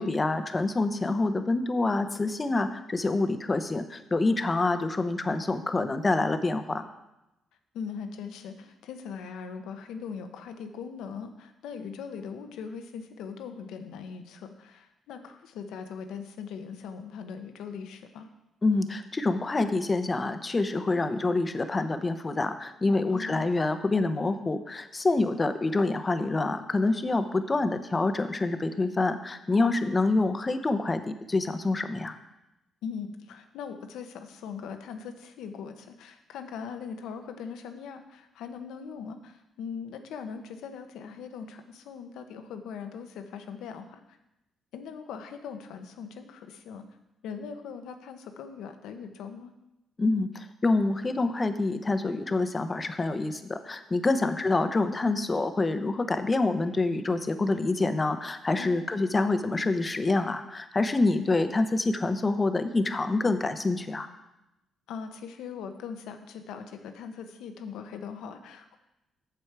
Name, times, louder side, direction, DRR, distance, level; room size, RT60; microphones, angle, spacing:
voice 1, 0.0-6.9 18.6-32.2 50.0-64.1, left 2 dB, 25° left, 9 dB, 0.7 m, -27 dB
voice 2, 7.7-18.3 23.1-23.5 32.8-44.2 44.7-46.8 47.2-49.5 54.2-54.4 58.6-59.0 64.9-68.8, left 6 dB, 85° left, 7 dB, 0.9 m, -40 dB
7.9 x 7.1 x 4.6 m, 0.91 s
cardioid pair, 90°, 0 cm